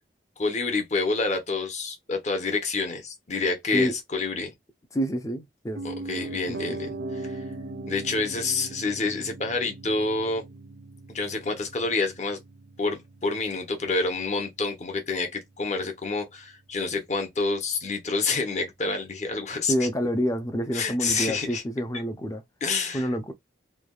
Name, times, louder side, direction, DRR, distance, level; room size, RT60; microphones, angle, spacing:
voice 1, 0.4-4.5 5.8-7.4 7.9-10.4 11.1-12.4 12.8-19.9 20.7-21.6 22.6-23.1, left 3 dB, 40° left, 0.8 m, -28 dB
voice 2, 4.9-5.8 6.5-7.0 19.7-22.4 22.9-23.3, equal, 20° left, 0.5 m, -28 dB
Piano, 5.7-15.7 16.0-16.1, right 2 dB, 75° right, 0.6 m, -39 dB
3.2 x 2.3 x 2.3 m
head